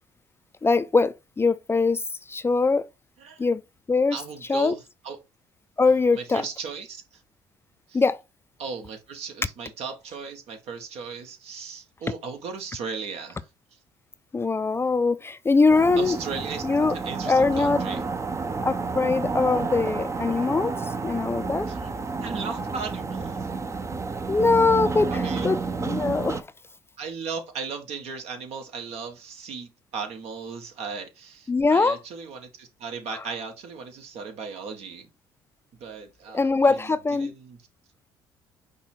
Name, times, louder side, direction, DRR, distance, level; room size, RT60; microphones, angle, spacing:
voice 1, 0.6-2.0 2.3-2.8 3.4-3.6 3.9-4.2 4.5-4.8 5.8-6.4 7.9-8.2 14.3-16.2 16.6-16.9 17.3-17.8 18.6-20.7 21.0-21.7 24.3-26.5 31.5-32.0 36.3-37.3, left 4 dB, 20° left, 0.4 m, -22 dB
voice 2, 4.1-5.2 6.1-7.2 7.9-8.0 8.6-13.8 16.0-16.6 16.9-18.0 21.7-21.8 22.2-23.5 25.1-25.5 27.0-35.1 35.8-37.6, right 5 dB, 65° right, 1.3 m, -37 dB
sound 1, 15.7-26.4, right 4 dB, 25° right, 0.6 m, -30 dB
5.3 x 2.3 x 4.4 m
supercardioid pair, 65°, 11 cm